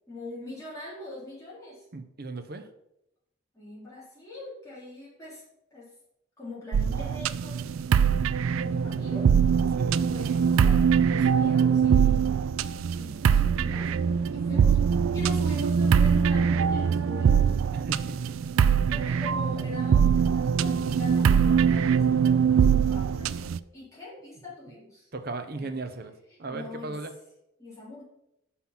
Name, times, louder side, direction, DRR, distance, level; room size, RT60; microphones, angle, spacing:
voice 1, 0.1-1.8 3.5-5.4 5.7-5.9 6.4-7.8 8.6-9.3 10.1-12.4 12.9-13.9 14.3-14.8 15.1-17.5 18.9-25.1 25.5-25.7 26.3-27.0 27.6-28.0, left 2 dB, 15° left, -8 dB, 3.3 m, -43 dB
voice 2, 1.9-2.7 9.7-10.1 17.7-18.2 18.9-19.1 25.1-26.1 26.4-27.1, right 3 dB, 45° right, 8 dB, 0.6 m, -36 dB
sound 1, 6.7-23.6, right 7 dB, 75° right, 0.3 m, -23 dB
6.0 x 5.6 x 5.8 m, 0.83 s
head